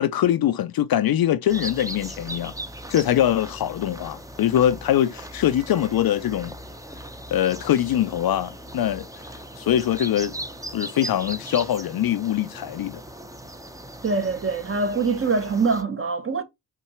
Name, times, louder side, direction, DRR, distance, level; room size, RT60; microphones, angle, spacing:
voice 1, 0.0-2.5 2.9-6.5 7.3-9.1 9.6-10.4 10.7-13.0, left 11 dB, 55° left, 0.5 m, -23 dB
sound 1, 1.5-15.8, right 1 dB, 10° right, 0.6 m, -38 dB
voice 2, 14.0-16.4, right 4 dB, 30° right, 0.9 m, -24 dB
5.7 x 2.7 x 3.1 m
supercardioid pair, 50°, 44 cm